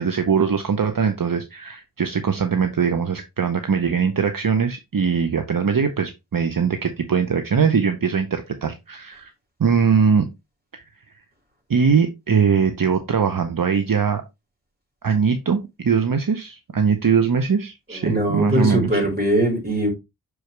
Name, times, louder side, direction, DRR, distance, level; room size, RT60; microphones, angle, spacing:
voice 1, 0.0-9.3 9.6-10.3 10.7-10.8 11.7-14.2 15.0-19.0, right 6 dB, 60° right, 0.8 m, -21 dB
voice 2, 17.9-19.9, right 1 dB, 25° right, 4.4 m, -21 dB
6.3 x 4.8 x 3.2 m
wide cardioid pair, 45°, 37 cm